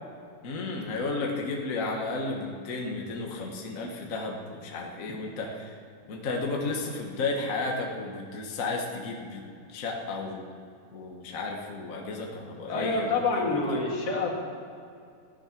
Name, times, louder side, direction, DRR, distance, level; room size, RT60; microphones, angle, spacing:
voice 1, 0.4-5.8 6.1-10.4 10.9-13.8, left 3 dB, 70° left, 0 dB, 0.7 m, -33 dB
voice 2, 12.7-14.3, left 3 dB, 50° left, -1 dB, 2.6 m, -27 dB
16.0 x 10.5 x 6.0 m, 2.4 s
omnidirectional pair, 3.9 m